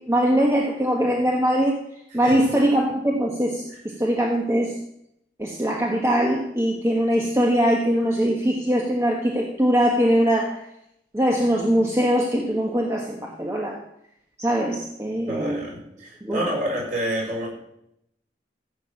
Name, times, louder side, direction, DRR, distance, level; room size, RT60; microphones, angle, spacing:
voice 1, 0.1-1.8 2.1-4.8 5.4-10.6 11.1-13.8 14.4-15.6 16.2-16.5, equal, 15° right, -1 dB, 1.4 m, -22 dB
voice 2, 15.3-17.5, right 1 dB, 45° right, -3 dB, 5.8 m, -28 dB
15.5 x 7.1 x 8.4 m, 0.79 s
head